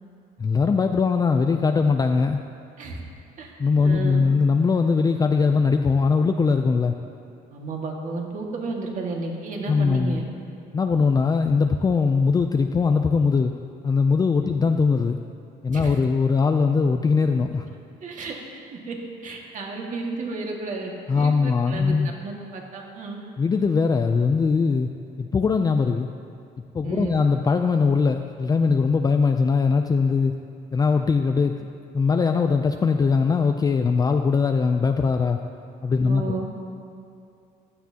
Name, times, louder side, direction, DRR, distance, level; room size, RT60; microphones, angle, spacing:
voice 1, 0.4-2.4 3.6-7.0 9.7-10.2 10.7-13.5 13.8-15.2 15.6-17.6 21.1-22.1 23.4-24.9 25.2-26.1 26.7-30.3 30.7-31.6 31.9-35.4 35.8-36.4, left 5 dB, 20° left, 5 dB, 0.4 m, -21 dB
voice 2, 3.8-4.3 7.5-10.3 14.4-14.5 15.7-16.0 18.0-18.4 18.7-19.0 19.2-22.0 22.2-23.2 26.8-27.2 36.0-36.5, right 3 dB, 50° right, 0 dB, 1.9 m, -32 dB
15.0 x 11.5 x 2.9 m, 2.6 s
cardioid pair, 110°, 17 cm